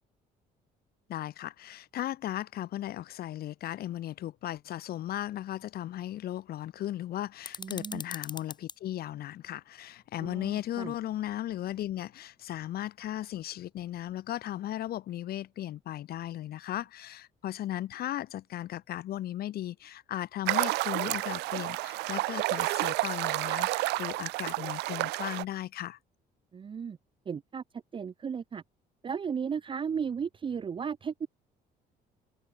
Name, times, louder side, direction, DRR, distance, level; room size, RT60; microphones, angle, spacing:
voice 1, 1.1-26.0, left 13 dB, 65° left, 2.2 m, -36 dB
sound 1, 7.4-8.8, left 4 dB, 25° left, 2.9 m, -41 dB
voice 2, 7.6-8.0 10.2-10.9 26.5-27.0 27.3-28.6 29.0-31.3, right 6 dB, 30° right, 0.7 m, -35 dB
sound 2, 20.5-25.4, right 21 dB, 85° right, 0.6 m, -30 dB
cardioid pair, 110°, 17 cm